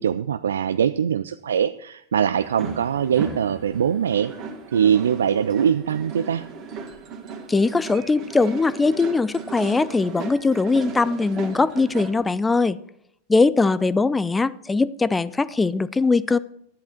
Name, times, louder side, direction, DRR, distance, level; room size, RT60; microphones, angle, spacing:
voice 1, 0.0-4.3 4.7-6.4, right 8 dB, 65° right, 12 dB, 0.4 m, -22 dB
sound 1, 2.4-12.2, right 5 dB, 35° right, 2.0 m, -36 dB
voice 2, 7.5-12.8 13.3-16.4, left 3 dB, 10° left, 17 dB, 0.4 m, -21 dB
11.5 x 10.5 x 4.4 m, 0.72 s
figure-of-eight pair, 90°, 0 cm